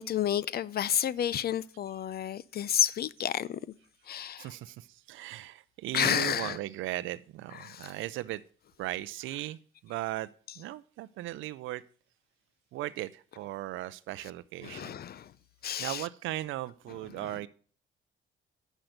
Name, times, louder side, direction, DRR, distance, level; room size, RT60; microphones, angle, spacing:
voice 1, 0.0-3.6 4.1-4.5 5.9-6.6 7.5-7.9 14.6-15.3 15.6-16.1 17.3-17.4, left 10 dB, 50° left, 0.6 m, -30 dB
voice 2, 4.4-8.4 8.8-10.3 10.6-11.8 12.7-15.0 15.8-17.5, right 15 dB, 85° right, 0.4 m, -37 dB
9.1 x 6.0 x 5.0 m
cardioid pair, 90°, 20 cm